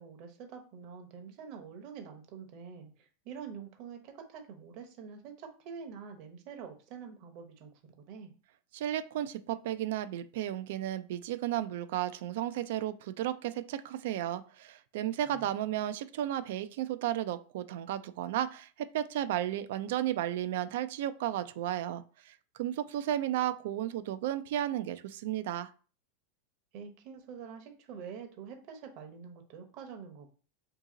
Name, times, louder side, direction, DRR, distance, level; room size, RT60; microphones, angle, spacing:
voice 1, 0.0-7.7 8.1-8.3 15.3-15.5 26.7-30.3, right 6 dB, 50° right, 4 dB, 0.8 m, -46 dB
voice 2, 8.7-25.7, right 12 dB, 70° right, 12 dB, 0.3 m, -34 dB
2.8 x 2.7 x 3.7 m, 0.38 s
supercardioid pair, 130°, 0 cm